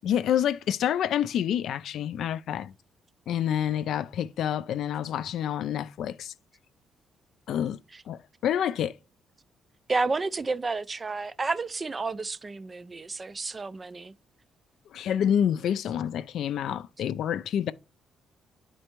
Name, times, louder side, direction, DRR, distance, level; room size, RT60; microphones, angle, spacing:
voice 1, 0.0-2.7 3.3-6.3 7.5-7.8 8.1-8.9 14.9-17.7, left 9 dB, 75° left, 0.3 m, -28 dB
voice 2, 9.9-14.1, right 3 dB, 30° right, 0.3 m, -31 dB
10.0 x 4.3 x 3.0 m
cardioid pair, 105°, 0 cm